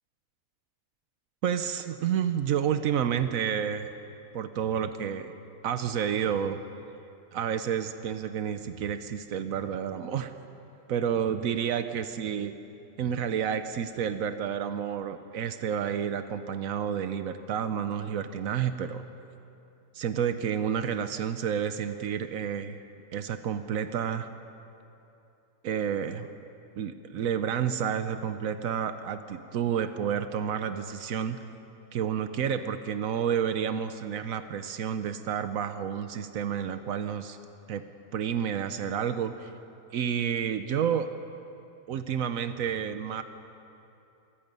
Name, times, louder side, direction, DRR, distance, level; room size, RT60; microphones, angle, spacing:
voice 1, 1.4-3.9 4.3-5.3 5.6-6.6 7.3-10.3 10.9-12.5 13.0-19.0 19.9-22.8 23.1-24.3 25.6-26.3 26.8-31.4 31.9-37.4 37.7-37.8 38.1-39.5 39.9-41.1 41.9-43.2, right 8 dB, 80° right, 10 dB, 1.2 m, -30 dB
25.5 x 20.0 x 5.4 m, 2.8 s
omnidirectional pair, 1.4 m